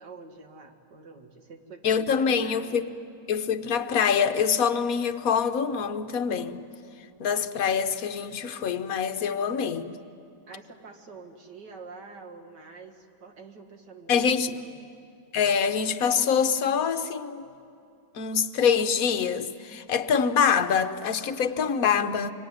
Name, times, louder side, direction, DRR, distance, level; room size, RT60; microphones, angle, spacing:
voice 1, 0.0-2.9 10.5-14.9, right 4 dB, 80° right, 4 dB, 2.6 m, -47 dB
voice 2, 1.8-2.9 3.3-6.6 7.2-10.0 14.1-14.5 15.3-17.4 18.1-22.3, left 7 dB, 60° left, 8 dB, 1.3 m, -25 dB
25.0 x 24.5 x 9.7 m, 2.6 s
omnidirectional pair, 1.8 m